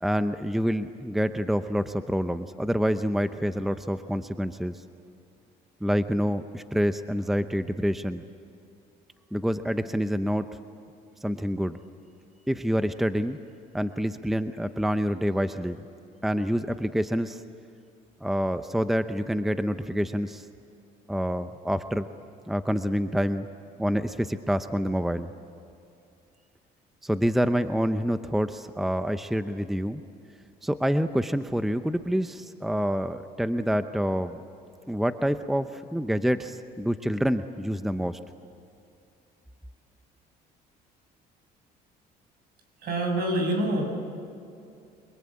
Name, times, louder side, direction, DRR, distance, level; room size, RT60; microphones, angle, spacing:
voice 1, 0.0-4.8 5.8-8.2 9.3-10.5 11.2-11.8 12.5-13.4 13.7-15.8 16.2-17.4 18.2-20.4 21.1-22.1 22.5-23.5 23.8-25.3 27.0-30.0 30.6-34.4 34.9-38.2, equal, ahead, 10 dB, 0.8 m, -27 dB
voice 2, 42.8-43.9, right 1 dB, 65° right, 3 dB, 6.7 m, -26 dB
29.5 x 23.0 x 8.7 m, 2.6 s
cardioid pair, 110°, 17 cm